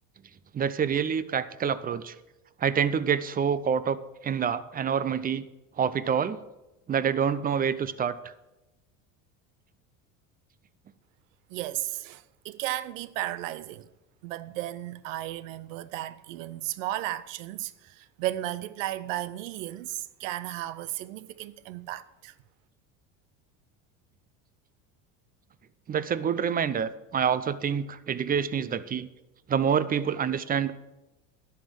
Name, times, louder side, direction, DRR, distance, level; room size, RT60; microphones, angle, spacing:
voice 1, 0.5-2.2 2.6-4.0 4.2-5.4 5.8-6.4 6.9-8.2 25.9-29.1 29.5-30.8, right 7 dB, 25° right, 0.6 m, -27 dB
voice 2, 11.5-13.9 14.2-22.3, right 14 dB, 85° right, 0.7 m, -34 dB
11.0 x 5.8 x 7.5 m
supercardioid pair, 100°, 38 cm